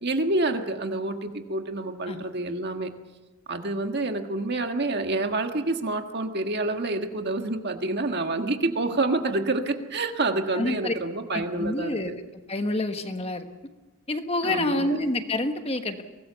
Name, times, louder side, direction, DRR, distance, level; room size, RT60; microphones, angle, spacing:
voice 1, 0.0-2.9 3.5-12.1 14.4-15.0, right 2 dB, 45° right, 5 dB, 1.7 m, -28 dB
voice 2, 10.5-10.9 11.3-12.1 12.5-13.5 14.1-16.0, left 2 dB, 25° left, 7 dB, 1.3 m, -28 dB
23.5 x 18.5 x 6.9 m, 1.2 s
head